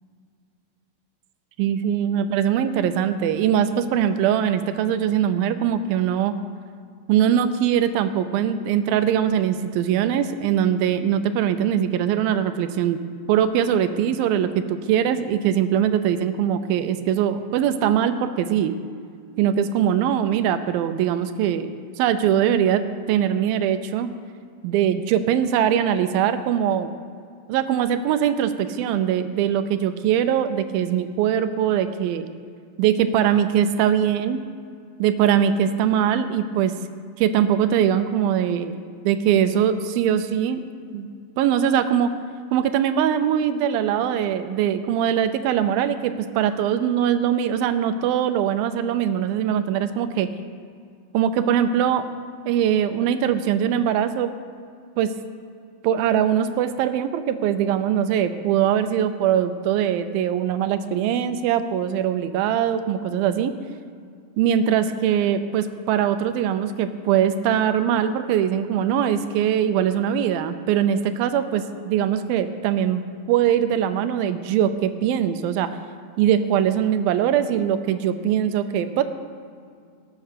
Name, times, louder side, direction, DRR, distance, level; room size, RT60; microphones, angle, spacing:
voice 1, 1.6-6.3 7.1-13.0 13.3-18.8 19.4-21.7 22.0-22.8 23.1-24.1 24.6-26.9 27.5-32.3 32.8-34.4 35.0-36.7 37.2-38.7 39.1-40.6 40.9-41.1 41.4-42.1 42.5-50.3 51.1-52.1 52.5-54.3 55.0-55.1 55.8-63.5 64.4-75.7 76.2-79.0, right 9 dB, 80° right, 10 dB, 2.4 m, -22 dB
17.5 x 7.9 x 6.6 m, 2.2 s
omnidirectional pair, 4.3 m